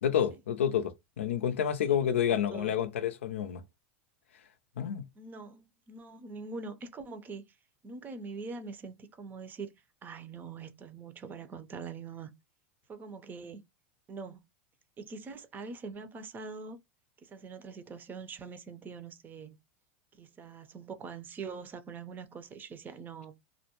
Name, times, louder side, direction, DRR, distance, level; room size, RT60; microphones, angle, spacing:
voice 1, 0.0-3.6 4.8-5.1, left 9 dB, 90° left, 0.4 m, -29 dB
voice 2, 5.2-7.4 7.8-9.7 10.0-12.3 12.9-13.6 14.1-14.4 15.0-16.8 17.2-19.6 20.1-23.4, right 4 dB, 30° right, 0.5 m, -43 dB
2.3 x 2.1 x 2.8 m
hypercardioid pair, 105°, 7 cm